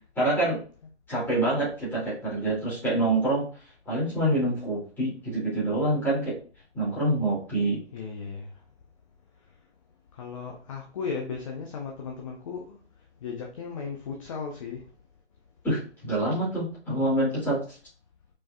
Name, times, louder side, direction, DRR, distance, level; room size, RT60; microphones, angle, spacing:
voice 1, 0.2-0.6 1.1-3.5 3.9-6.3 6.7-7.8 15.6-17.6, right 1 dB, 5° left, 2.5 m, -26 dB
voice 2, 7.9-8.6 10.1-12.8 13.2-14.9, left 5 dB, 30° left, 0.6 m, -36 dB
4.8 x 4.7 x 2.3 m
figure-of-eight pair, 140°, 35 cm